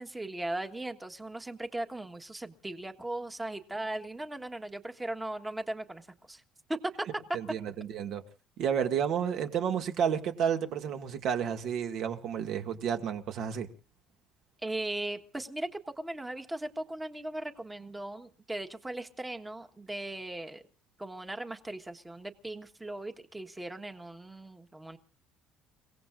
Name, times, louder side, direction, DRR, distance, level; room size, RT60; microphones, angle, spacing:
voice 1, 0.0-6.4 6.7-7.2 14.6-20.6 21.0-25.0, right 1 dB, 10° right, 1.5 m, -38 dB
voice 2, 7.3-8.2 8.6-13.7, right 8 dB, 60° right, 2.2 m, -31 dB
30.0 x 17.5 x 2.6 m
cardioid pair, 135°, 0 cm